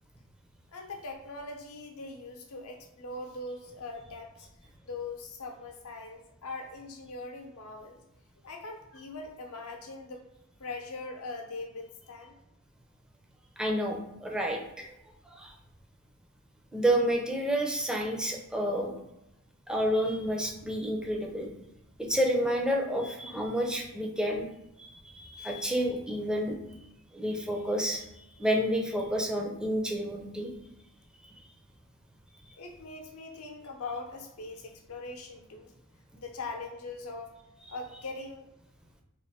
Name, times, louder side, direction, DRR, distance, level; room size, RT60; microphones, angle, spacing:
voice 1, 0.7-4.5 4.8-8.0 8.4-10.2 10.6-12.4 32.6-35.7 36.2-37.3 37.7-38.5, left 3 dB, 75° left, 3 dB, 0.8 m, -41 dB
voice 2, 13.6-14.9 15.3-15.5 16.7-18.9 19.7-21.5 22.0-24.5 24.8-26.6 27.1-28.1 28.4-30.5, equal, 5° right, 1 dB, 0.5 m, -29 dB
3.2 x 2.9 x 4.2 m, 0.89 s
head